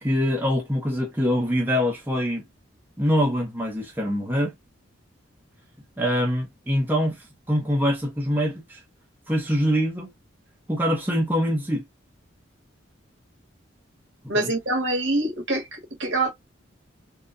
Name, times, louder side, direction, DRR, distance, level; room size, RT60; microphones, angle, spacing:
voice 1, 0.0-2.4 3.0-4.5 6.0-8.8 9.3-10.1 10.7-11.8 14.4-14.5, equal, 10° right, 0.8 m, -24 dB
voice 2, 14.3-16.3, right 2 dB, 65° right, 1.8 m, -25 dB
3.7 x 2.2 x 2.5 m
head